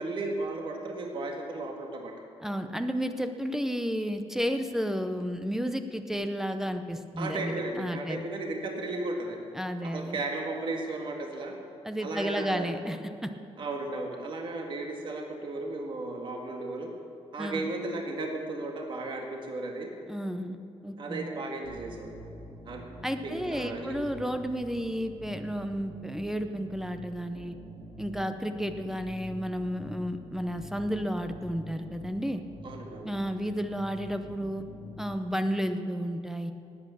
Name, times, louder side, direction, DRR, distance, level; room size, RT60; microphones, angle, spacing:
voice 1, 0.0-2.1 7.2-9.4 9.8-11.5 12.0-12.7 13.6-16.9 17.3-19.9 21.0-22.1 22.7-22.8 23.2-24.0 32.6-33.1, right 2 dB, 50° right, 2 dB, 1.9 m, -35 dB
voice 2, 2.4-8.2 9.5-10.2 11.8-13.3 17.4-17.7 20.1-20.6 20.8-21.3 23.0-27.6 28.0-32.4 33.0-34.6 35.0-36.5, equal, 5° right, 8 dB, 0.6 m, -32 dB
sound 1, 21.6-35.2, equal, 85° right, 3.6 m, -46 dB
18.5 x 8.5 x 7.0 m, 2.6 s
wide cardioid pair, 160°, 11 cm